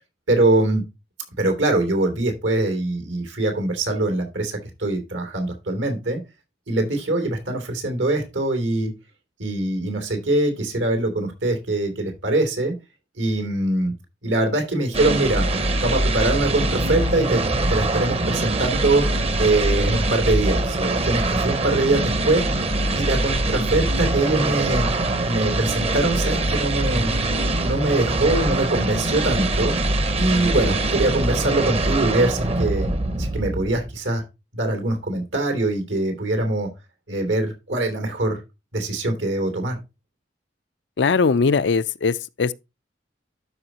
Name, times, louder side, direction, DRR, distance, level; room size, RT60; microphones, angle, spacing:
voice 1, 0.3-0.8 1.4-6.2 6.7-8.9 9.4-12.7 13.2-13.9 14.2-15.4 15.8-17.4 17.7-19.0 19.4-22.5 22.9-24.9 25.3-27.1 27.6-29.8 30.2-32.9 33.2-34.2 34.5-36.7 37.1-38.4 38.7-39.8, right 2 dB, 80° right, 3.0 m, -23 dB
sound 1, 14.9-34.0, right 2 dB, 35° right, 0.9 m, -23 dB
voice 2, 41.0-42.5, left 4 dB, 70° left, 0.5 m, -20 dB
12.5 x 5.0 x 2.9 m
head